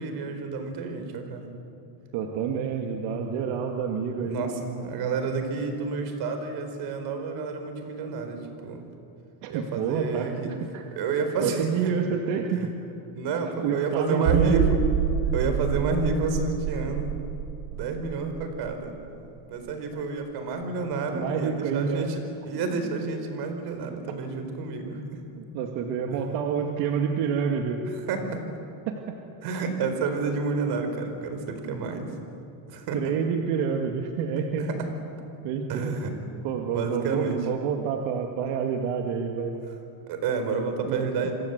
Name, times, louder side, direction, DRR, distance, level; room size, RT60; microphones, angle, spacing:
voice 1, 0.0-1.5 4.2-8.9 9.5-10.5 11.0-11.9 12.5-12.7 13.2-14.7 15.3-17.2 17.7-18.9 19.5-22.2 22.5-25.0 26.1-26.2 27.9-28.4 29.4-32.1 32.7-33.1 34.6-34.9 35.7-36.1 36.7-37.4 40.1-41.3, right 4 dB, 55° right, 7 dB, 4.5 m, -29 dB
voice 2, 2.1-4.4 9.4-10.9 11.4-12.7 13.6-14.6 19.9-20.0 21.1-22.1 25.4-27.8 28.9-29.2 32.9-34.7 35.4-35.9 36.4-39.5 40.8-41.3, right 7 dB, 70° right, 3 dB, 2.3 m, -28 dB
sound 1, 14.3-19.7 20.0-20.1 20.6-20.7, right 9 dB, 90° right, 1.5 m, -28 dB
28.5 x 25.0 x 8.2 m, 2.8 s
cardioid pair, 165°, 46 cm